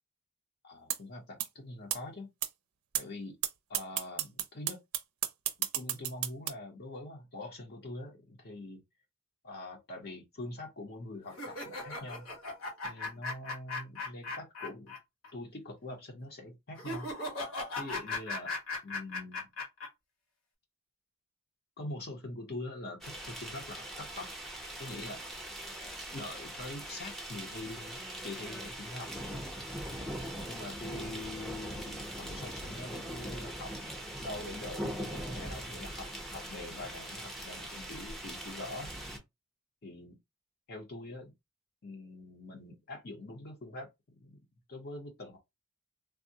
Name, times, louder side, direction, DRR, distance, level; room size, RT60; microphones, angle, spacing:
voice 1, 0.6-2.3 3.0-3.4 3.7-4.8 5.7-8.8 9.4-12.3 12.8-15.0 15.3-17.1 17.8-18.5 18.8-19.5 21.8-24.3 24.8-25.2 26.1-29.1 30.4-33.7 34.2-38.9 39.8-40.1 40.7-41.3 41.8-43.9 44.2-44.4 44.7-45.4, left 2 dB, 50° left, 0.7 m, -44 dB
sound 1, 0.9-1.0 1.4-1.5 1.9-2.0 2.4-2.5 2.9-3.0 3.4-3.5 3.7-6.5, right 12 dB, 75° right, 0.5 m, -31 dB
sound 2, 11.3-15.0 15.2-15.3 16.8-19.9, left 2 dB, 70° left, 1.1 m, -37 dB
sound 3, 23.0-39.2, right 1 dB, ahead, 0.6 m, -41 dB
3.5 x 2.0 x 2.7 m
head